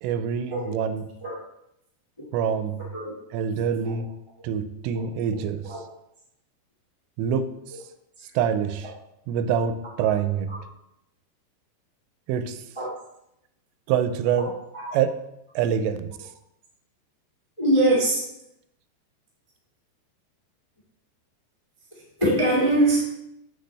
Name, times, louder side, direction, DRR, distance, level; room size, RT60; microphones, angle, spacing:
voice 1, 0.0-1.0 2.3-2.8 3.3-4.1 4.4-5.6 7.2-7.5 8.4-8.9 9.3-10.5 12.3-12.6 13.9-14.5 14.9-15.1 15.6-16.1, right 8 dB, 85° right, 11 dB, 2.7 m, -25 dB
voice 2, 5.3-5.8 10.5-10.6 12.7-12.9 14.4-14.5 14.7-14.9 17.6-18.2 22.2-23.0, right 1 dB, 35° left, -7 dB, 0.4 m, -23 dB
7.8 x 6.1 x 3.4 m, 0.82 s
omnidirectional pair, 5.1 m